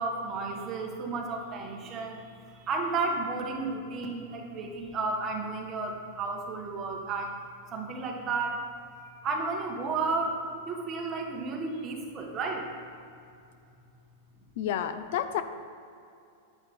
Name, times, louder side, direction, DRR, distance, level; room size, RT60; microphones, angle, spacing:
voice 1, 0.0-7.3 7.7-8.7 9.0-10.4 10.6-12.7, right 3 dB, 20° right, 2 dB, 1.4 m, -32 dB
voice 2, 14.6-15.4, left 10 dB, 55° left, 10 dB, 0.6 m, -30 dB
10.0 x 8.5 x 5.3 m, 2.6 s
supercardioid pair, 165°, 0 cm